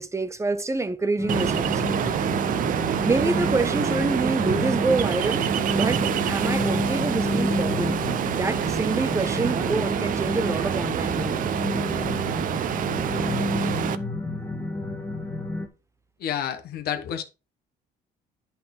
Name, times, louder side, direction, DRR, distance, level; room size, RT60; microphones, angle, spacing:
voice 1, 0.0-2.2 3.0-8.0 8.3-11.5, right 3 dB, 15° right, 0.7 m, -27 dB
sound 1, 1.2-15.7, left 2 dB, 15° left, 1.4 m, -30 dB
Ocean, 1.3-13.9, right 10 dB, 55° right, 0.6 m, -27 dB
voice 2, 16.2-17.2, left 9 dB, 65° left, 1.2 m, -29 dB
9.4 x 5.6 x 3.8 m
cardioid pair, 110°, 17 cm